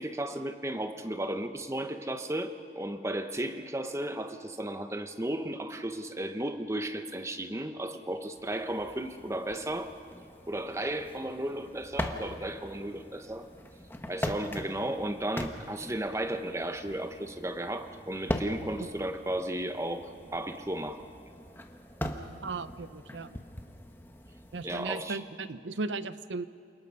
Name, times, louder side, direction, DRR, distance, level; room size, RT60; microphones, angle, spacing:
voice 1, 0.0-9.9 10.5-13.5 14.1-21.0 24.6-25.2, right 1 dB, 15° right, 8 dB, 1.0 m, -34 dB
sound 1, 8.3-24.8, left 1 dB, 10° left, 1.2 m, -41 dB
voice 2, 22.4-23.4 24.5-26.4, right 3 dB, 90° right, 14 dB, 0.7 m, -36 dB
28.5 x 19.0 x 5.5 m, 2.6 s
head